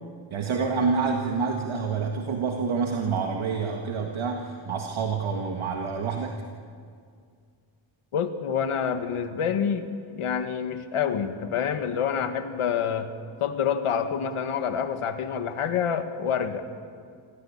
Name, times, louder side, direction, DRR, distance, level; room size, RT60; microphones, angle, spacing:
voice 1, 0.3-6.4, right 5 dB, 70° right, 2 dB, 1.8 m, -27 dB
voice 2, 8.1-13.1 13.4-16.7, left 7 dB, 85° left, 7 dB, 1.8 m, -27 dB
26.5 x 16.0 x 8.8 m, 2.2 s
wide cardioid pair, 135°, 50 cm